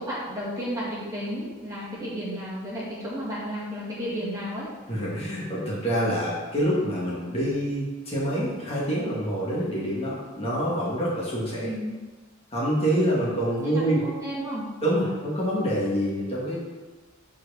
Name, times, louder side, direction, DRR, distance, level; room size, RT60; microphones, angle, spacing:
voice 1, 0.0-4.7 11.6-12.0 13.6-14.7, equal, 15° right, -8 dB, 2.0 m, -32 dB
voice 2, 4.9-11.7 12.5-14.0 14.8-16.6, equal, 30° left, -6 dB, 1.8 m, -26 dB
6.4 x 4.4 x 6.2 m, 1.3 s
head